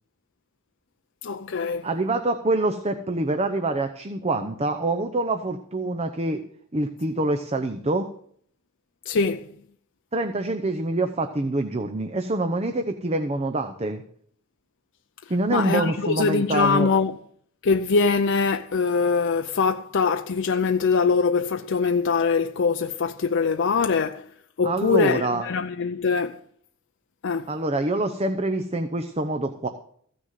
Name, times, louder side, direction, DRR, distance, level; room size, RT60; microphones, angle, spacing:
voice 1, 1.2-1.9 9.1-9.5 15.5-17.2 17.6-24.3 24.6-26.4 27.2-27.5, left 5 dB, 60° left, 0.5 m, -23 dB
voice 2, 1.8-6.4 6.7-8.1 10.1-14.0 15.3-16.9 24.6-25.4 27.5-29.7, right 2 dB, 30° right, 0.7 m, -25 dB
15.0 x 6.4 x 7.5 m
head